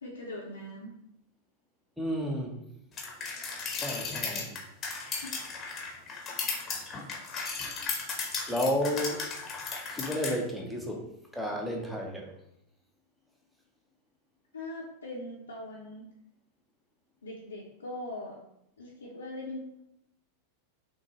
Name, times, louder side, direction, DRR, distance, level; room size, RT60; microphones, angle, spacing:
voice 1, 0.0-0.9 5.2-5.4 14.5-16.1 17.2-18.4 18.8-19.8, left 1 dB, 75° left, -5 dB, 0.7 m, -41 dB
voice 2, 2.0-2.6 3.7-4.5 8.5-9.2 9.9-11.0 11.3-12.3, equal, ahead, 0 dB, 0.8 m, -32 dB
sound 1, 3.0-10.3, left 4 dB, 25° left, 0.9 m, -35 dB
6.1 x 2.2 x 3.0 m, 0.78 s
figure-of-eight pair, 90°, 0 cm